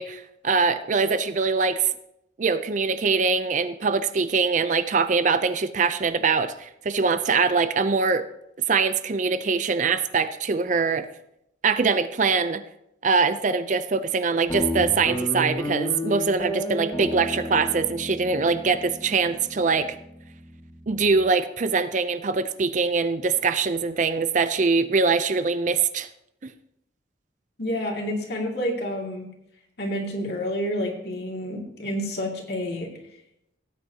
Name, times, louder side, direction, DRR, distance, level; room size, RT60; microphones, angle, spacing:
voice 1, 0.0-1.9 2.4-8.2 8.7-11.1 11.6-12.6 13.0-20.0 20.9-26.1, right 4 dB, 40° right, 12 dB, 0.4 m, -23 dB
Guitar, 14.5-21.2, equal, 20° left, 2.0 m, -33 dB
voice 2, 27.6-29.3 29.8-32.9, equal, 55° left, 0 dB, 2.3 m, -29 dB
17.5 x 9.1 x 2.8 m, 0.81 s
head